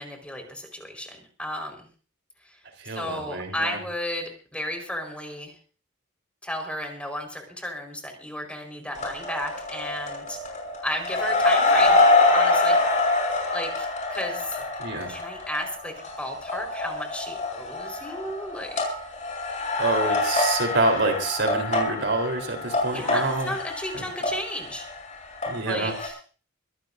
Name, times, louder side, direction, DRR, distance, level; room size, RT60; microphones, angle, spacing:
voice 1, 0.0-1.8 2.9-5.5 6.4-10.4 10.8-12.0 12.3-12.8 13.5-14.6 15.1-19.0 22.9-24.8 25.7-26.2, left 1 dB, 5° left, 3 dB, 4.4 m, -33 dB
voice 2, 2.8-3.8 14.8-15.1 19.8-23.5 23.9-24.0 25.5-25.9, right 2 dB, 60° right, 4 dB, 3.7 m, -27 dB
sound 1, 9.0-25.6 25.8-26.1, left 2 dB, 40° left, 6.0 m, -25 dB
25.0 x 15.0 x 2.6 m, 0.39 s
head